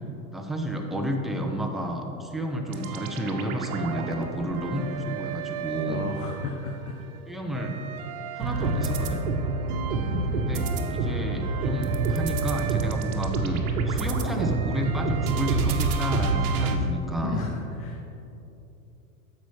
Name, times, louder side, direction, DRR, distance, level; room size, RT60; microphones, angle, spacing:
voice 1, 0.3-6.1 7.3-7.8 8.3-9.2 10.3-17.4, right 1 dB, ahead, 1 dB, 0.4 m, -31 dB
sound 1, 2.7-6.8 7.2-16.8, right 3 dB, 80° right, 1.0 m, -28 dB
voice 2, 5.9-6.9 7.6-7.7 10.1-10.4 16.7-18.0, left 4 dB, 90° left, 1 dB, 1.0 m, -34 dB
9.9 x 7.1 x 3.2 m, 2.9 s
supercardioid pair, 125°, 43 cm